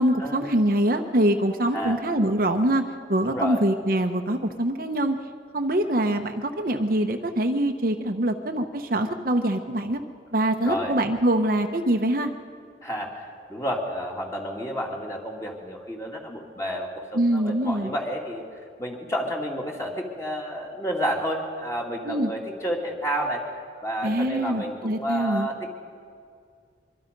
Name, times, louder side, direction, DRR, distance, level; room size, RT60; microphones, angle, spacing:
voice 1, 0.0-2.8 3.1-5.2 5.5-10.0 10.3-12.3 17.1-17.9 22.0-22.3 24.0-25.5, right 1 dB, 50° right, 5 dB, 1.0 m, -24 dB
voice 2, 1.7-2.1 3.3-3.6 10.6-11.0 12.8-18.4 18.8-23.4 23.8-25.7, equal, 15° left, -1 dB, 2.7 m, -30 dB
24.5 x 24.0 x 5.4 m, 2.2 s
head